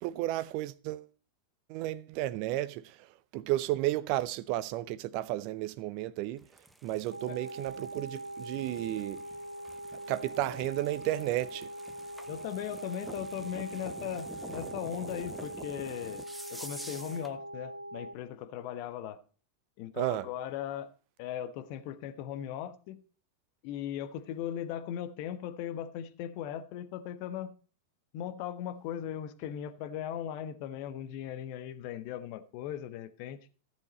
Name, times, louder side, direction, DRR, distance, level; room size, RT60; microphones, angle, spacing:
voice 1, 0.0-1.1 1.7-3.0 3.3-6.4 6.8-9.2 10.1-11.7 20.0-20.3, right 15 dB, 45° right, 0.6 m, -33 dB
sound 1, 6.4-17.4, right 1 dB, 5° right, 0.9 m, -49 dB
sound 2, 7.1-18.2, right 1 dB, 90° right, 0.8 m, -42 dB
voice 2, 12.3-16.2 16.5-19.2 19.8-20.9 21.2-23.0 23.6-27.5 28.1-33.4, left 10 dB, 45° left, 1.2 m, -38 dB
14.5 x 7.1 x 4.2 m
figure-of-eight pair, 90°, 0 cm